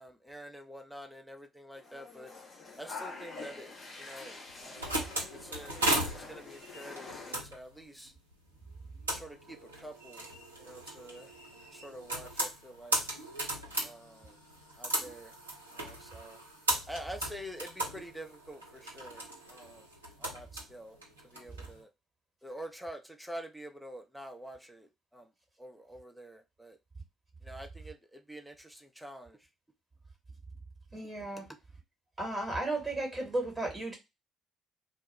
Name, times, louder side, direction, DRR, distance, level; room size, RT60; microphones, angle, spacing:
voice 1, 0.0-2.3 2.8-5.0 5.3-8.1 9.1-10.3 10.6-11.3 11.7-13.0 13.8-14.3 14.8-15.3 15.8-16.4 16.9-19.8 20.2-21.0 21.3-21.9 22.4-25.3 25.6-26.8 27.4-29.4 31.4-31.5, equal, ahead, 0.5 m, -47 dB
sound 1, 1.8-7.4, left 4 dB, 45° left, 0.8 m, -46 dB
sound 2, 4.5-21.7, right 1 dB, 80° right, 0.5 m, -37 dB
voice 2, 30.9-31.5 32.2-33.9, right 2 dB, 20° right, 1.1 m, -34 dB
2.2 x 2.0 x 3.0 m
figure-of-eight pair, 50°, 0 cm